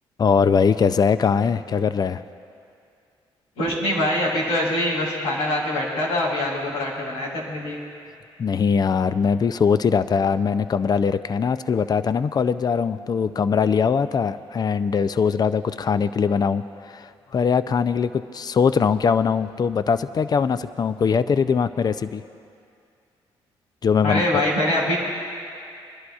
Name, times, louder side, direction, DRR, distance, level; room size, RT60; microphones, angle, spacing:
voice 1, 0.2-2.2 8.4-22.2 23.8-24.2, left 6 dB, 40° left, 14 dB, 0.4 m, -21 dB
voice 2, 3.6-7.8 24.0-25.0, left 1 dB, 80° left, -4 dB, 3.0 m, -24 dB
26.0 x 11.0 x 2.4 m, 2.4 s
supercardioid pair, 65°, 11 cm